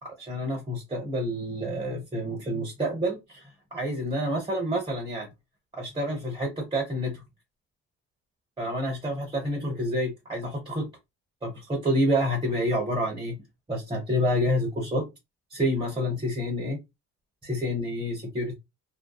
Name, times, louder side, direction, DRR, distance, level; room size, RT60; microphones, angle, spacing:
voice 1, 0.0-5.3 5.7-7.2 8.6-10.9 11.4-13.4 13.7-15.1 15.5-16.8 17.4-18.5, equal, 15° right, 0.9 m, -28 dB
2.6 x 2.2 x 2.3 m
cardioid pair, 90°, 30 cm